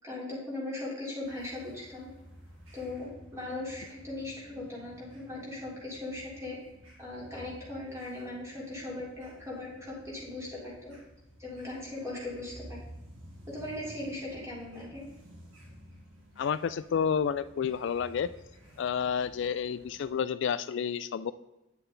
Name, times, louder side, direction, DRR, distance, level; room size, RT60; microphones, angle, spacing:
voice 1, 0.0-2.1 2.7-6.6 7.0-10.9 11.4-12.8 13.5-15.0, left 2 dB, 15° right, -5 dB, 3.7 m, -39 dB
sound 1, 1.2-20.1, equal, 80° right, 3.0 m, -53 dB
voice 2, 16.4-18.3 18.8-21.3, left 7 dB, 65° left, 15 dB, 0.3 m, -30 dB
9.7 x 7.9 x 3.9 m, 1.0 s
head